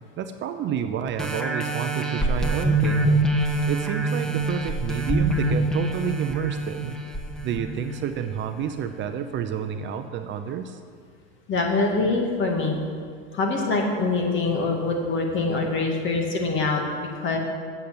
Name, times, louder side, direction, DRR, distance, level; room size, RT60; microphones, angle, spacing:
voice 1, 0.2-3.3 3.7-7.0 7.4-10.8, right 8 dB, 35° right, 8 dB, 0.7 m, -30 dB
sound 1, 1.2-8.4 8.9-9.0, right 2 dB, ahead, 1.2 m, -25 dB
voice 2, 11.5-12.8 13.3-17.4, left 3 dB, 40° left, 2 dB, 2.1 m, -24 dB
8.5 x 7.1 x 7.9 m, 2.1 s
supercardioid pair, 105°, 31 cm